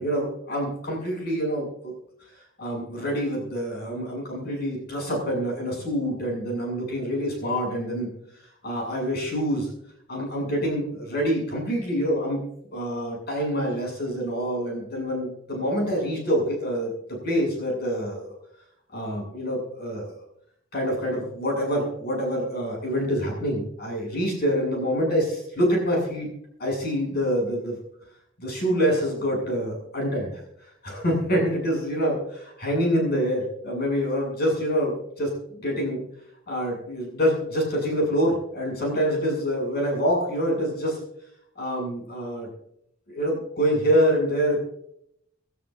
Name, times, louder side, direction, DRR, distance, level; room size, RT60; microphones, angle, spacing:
voice 1, 0.0-1.9 2.6-8.1 8.6-9.7 10.1-12.4 12.7-16.9 17.2-18.3 18.9-20.1 20.7-26.3 26.6-27.8 28.4-36.0 36.5-41.0 41.5-42.5 43.1-44.6, equal, 50° left, -1 dB, 7.9 m, -26 dB
28.0 x 12.5 x 2.7 m, 0.75 s
head